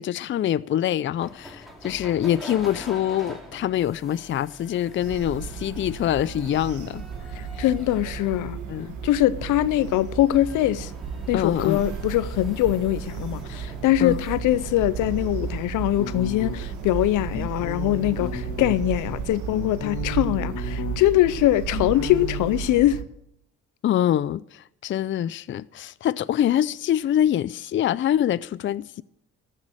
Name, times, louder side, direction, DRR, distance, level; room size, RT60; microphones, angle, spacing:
voice 1, 0.0-7.0 7.6-7.7 8.7-9.0 11.3-11.9 14.0-14.2 23.8-29.0, left 11 dB, 40° left, 0.4 m, -25 dB
sound 1, 1.2-18.5, left 1 dB, ahead, 2.9 m, -45 dB
sound 2, 5.0-23.0, right 7 dB, 80° right, 1.3 m, -34 dB
voice 2, 7.6-8.6 9.0-10.9 11.3-23.0, left 14 dB, 90° left, 0.6 m, -22 dB
sound 3, 16.0-16.8 17.3-18.8 19.2-21.2 21.4-22.5, left 7 dB, 70° left, 1.8 m, -34 dB
14.0 x 6.6 x 7.4 m
cardioid pair, 90°, 30 cm